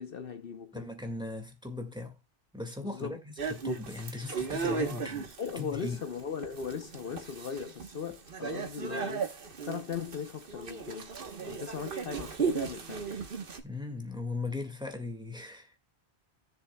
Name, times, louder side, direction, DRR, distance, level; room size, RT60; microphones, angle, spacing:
voice 1, 0.0-0.9 2.8-3.2 5.4-9.3 9.6-11.1 11.4-13.1, left 6 dB, 60° left, 1.0 m, -38 dB
voice 2, 0.7-2.2 2.5-5.3 5.6-6.0 13.6-15.7, left 3 dB, 5° right, 1.9 m, -38 dB
sound 1, 3.4-13.6, right 5 dB, 60° right, 1.3 m, -36 dB
16.5 x 7.1 x 2.2 m
omnidirectional pair, 1.1 m